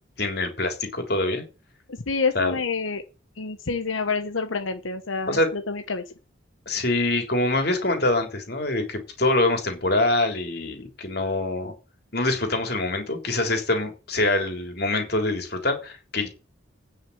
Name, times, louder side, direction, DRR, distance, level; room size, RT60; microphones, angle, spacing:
voice 1, 0.2-1.4 2.4-2.5 5.3-5.5 6.7-11.7 12.1-16.3, left 2 dB, 55° left, 5 dB, 3.5 m, -24 dB
voice 2, 1.9-3.0 3.4-6.0, left 4 dB, 90° left, 7 dB, 1.1 m, -28 dB
10.0 x 6.4 x 8.6 m, 0.31 s
head